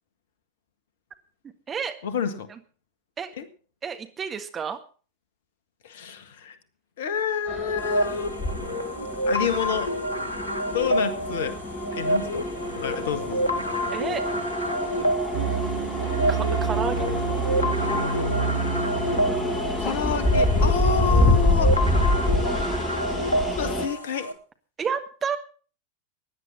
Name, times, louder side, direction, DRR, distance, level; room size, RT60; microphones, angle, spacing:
voice 1, 2.0-2.5 3.4-3.5 5.8-6.6 7.0-8.3 9.3-9.9 10.7-11.6 12.0-12.5 12.7-13.5 19.8-21.8 23.5-24.3, left 6 dB, 55° left, 11 dB, 1.7 m, -28 dB
voice 2, 3.8-4.8 13.9-14.2 16.3-17.2 24.8-25.4, right 6 dB, 20° right, 6 dB, 1.6 m, -30 dB
sound 1, 7.5-23.9, left 1 dB, 20° left, 2.6 m, -27 dB
sound 2, 7.8-24.3, equal, 80° left, 1.7 m, -29 dB
sound 3, 15.3-20.6, right 6 dB, 60° right, 2.3 m, -29 dB
17.0 x 10.5 x 5.6 m, 0.40 s
figure-of-eight pair, 90°, 0 cm